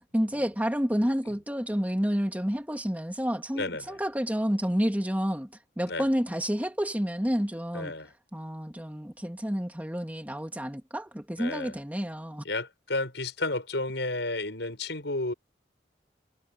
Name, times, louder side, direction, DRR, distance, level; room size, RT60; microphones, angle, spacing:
voice 1, 0.1-5.5 5.8-7.9 8.3-12.4, equal, 10° right, 2.6 m, -29 dB
voice 2, 3.5-4.0 5.9-6.0 7.7-8.1 11.4-11.8 12.4-15.3, left 2 dB, 80° left, 6.2 m, -32 dB
head